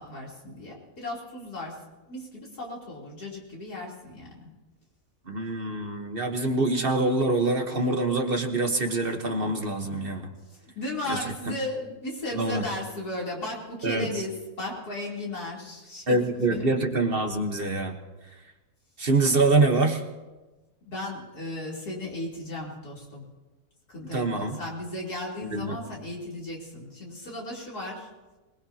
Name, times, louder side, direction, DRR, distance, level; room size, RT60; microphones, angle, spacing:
voice 1, 0.0-1.8 2.1-4.5 6.4-6.5 10.5-16.6 20.9-23.2 23.9-28.1, left 1 dB, 75° left, -3 dB, 3.9 m, -36 dB
voice 2, 5.3-10.3 11.1-11.2 11.5-11.6 12.3-12.6 13.8-14.2 16.1-18.0 19.0-20.0 24.1-24.6 25.4-25.8, right 2 dB, 40° right, 4 dB, 1.3 m, -25 dB
24.5 x 19.5 x 2.8 m, 1.2 s
omnidirectional pair, 1.7 m